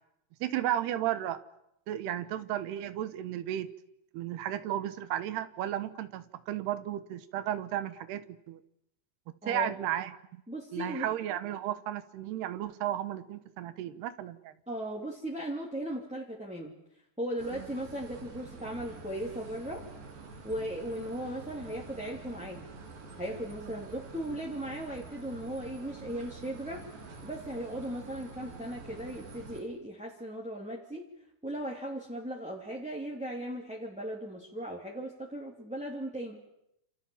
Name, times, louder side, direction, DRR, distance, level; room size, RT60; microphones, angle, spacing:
voice 1, 0.4-1.4 1.9-3.7 4.1-8.6 9.5-10.4 10.7-14.5 17.5-17.6, right 12 dB, 85° right, 13 dB, 3.3 m, -34 dB
voice 2, 9.4-9.8 10.5-11.1 14.7-16.8 17.2-19.8 20.4-22.7 23.2-26.8 27.2-31.0 31.4-36.4, right 1 dB, ahead, -3 dB, 2.3 m, -37 dB
sound 1, 17.4-29.6, right 3 dB, 60° right, 4.9 m, -47 dB
28.5 x 28.0 x 7.2 m, 0.81 s
omnidirectional pair, 4.6 m